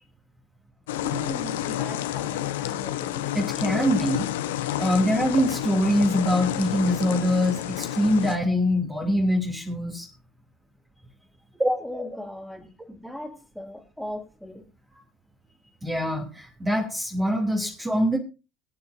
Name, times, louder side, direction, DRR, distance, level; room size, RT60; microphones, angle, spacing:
sound 1, 0.9-8.4, left 12 dB, 75° left, 1.1 m, -30 dB
voice 1, 1.0-3.3 11.8-14.6, left 1 dB, ahead, 3.5 m, -38 dB
voice 2, 3.3-4.3 4.8-10.1 11.6-11.8 15.8-18.2, equal, 15° right, 3.0 m, -23 dB
23.0 x 9.7 x 2.7 m
hypercardioid pair, 70°, 0 cm